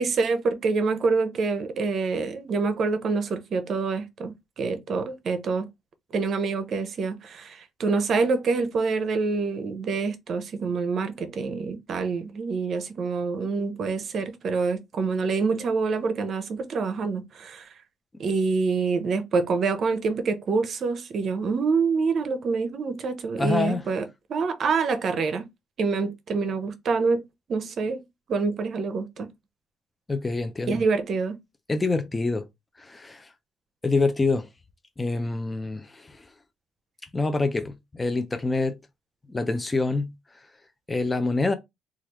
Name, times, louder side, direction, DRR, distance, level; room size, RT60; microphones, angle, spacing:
voice 1, 0.0-5.7 6.1-17.7 18.2-25.5 25.8-27.2 27.5-28.0 28.3-29.3 30.7-31.4, right 4 dB, 55° right, 0.6 m, -26 dB
voice 2, 23.4-23.8 30.1-30.8 31.7-32.5 32.8-33.3 33.8-34.5 35.0-36.2 37.1-38.8 39.3-40.1 40.9-41.5, left 3 dB, 20° left, 0.4 m, -26 dB
3.2 x 2.4 x 2.9 m
cardioid pair, 105°, 0 cm